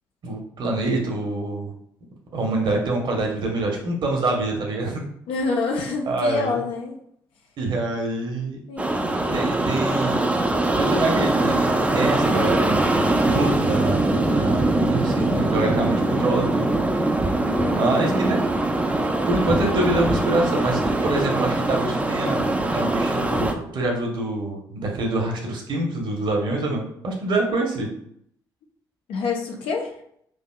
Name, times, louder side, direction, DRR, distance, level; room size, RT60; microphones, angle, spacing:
voice 1, 0.2-1.7 2.3-5.0 6.1-6.6 7.6-8.6 9.3-10.3 10.7-14.0 14.3-16.7 17.7-18.6 19.3-27.9, right 2 dB, 45° right, 1 dB, 1.1 m, -25 dB
voice 2, 5.3-6.9 8.7-9.0 17.4-17.9 29.1-29.9, left 4 dB, 55° left, 1 dB, 0.8 m, -27 dB
sound 1, 8.8-23.5, right 2 dB, 10° right, 0.6 m, -22 dB
6.3 x 2.7 x 2.3 m, 0.70 s
figure-of-eight pair, 45°, 11 cm